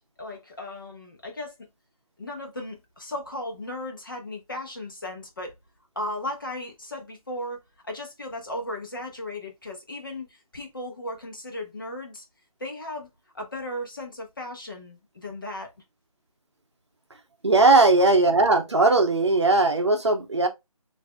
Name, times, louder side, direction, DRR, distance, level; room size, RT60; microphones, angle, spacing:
voice 1, 0.2-1.5 2.2-5.5 5.9-7.6 7.8-12.2 12.6-13.1 13.3-15.7, left 1 dB, 35° left, 1.0 m, -36 dB
voice 2, 17.4-20.5, right 3 dB, 50° right, 0.7 m, -19 dB
6.6 x 2.7 x 2.2 m
figure-of-eight pair, 175°, 19 cm